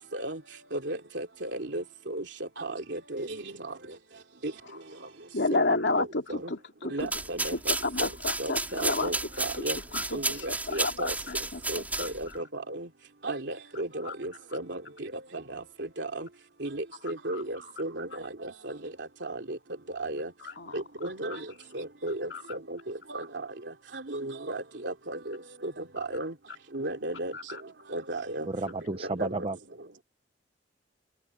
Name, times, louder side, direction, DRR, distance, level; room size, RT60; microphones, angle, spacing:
voice 1, 0.7-2.2 2.6-3.3 5.5-5.6 6.3-6.4 6.9-7.7 8.4-9.8 10.1-11.1 11.7-12.9 13.2-14.8 15.5-15.6 16.0-16.3 16.6-18.1 18.4-18.5 19.2-19.6 20.0-20.3 20.7-21.4 21.7-22.8 23.1-23.2 24.1-25.4 25.6-25.7 26.0-26.3 26.7-27.3 27.9-28.5 29.2-29.3, right 1 dB, 70° right, 3.0 m, -34 dB
voice 2, 5.3-7.1 7.5-9.1 9.9-12.1 14.0-14.1 17.3-17.4 20.4-20.8 22.3-22.4 27.3-27.6, left 3 dB, 70° left, 2.5 m, -31 dB
sound 1, 7.0-12.4, right 2 dB, 10° right, 4.9 m, -32 dB
voice 3, 28.5-29.6, right 2 dB, 30° right, 0.8 m, -32 dB
head